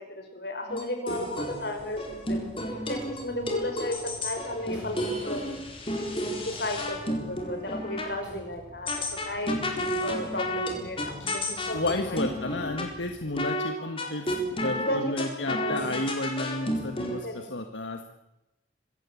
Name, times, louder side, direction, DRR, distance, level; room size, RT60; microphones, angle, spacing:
voice 1, 0.0-2.4 2.9-5.6 6.3-8.9 9.2-9.6 10.0-12.3 13.8-14.2 14.7-15.8 17.1-17.6, left 1 dB, 65° left, 5 dB, 5.5 m, -34 dB
sound 1, 0.7-8.1 8.9-12.9 13.4-13.7 14.0-17.2, left 1 dB, 30° left, 4.2 m, -32 dB
sound 2, 1.8-13.3, equal, 5° right, 7.0 m, -49 dB
voice 2, 11.7-14.4 14.6-18.1, left 2 dB, 85° left, 6 dB, 1.8 m, -32 dB
25.0 x 16.5 x 8.5 m, 0.93 s
head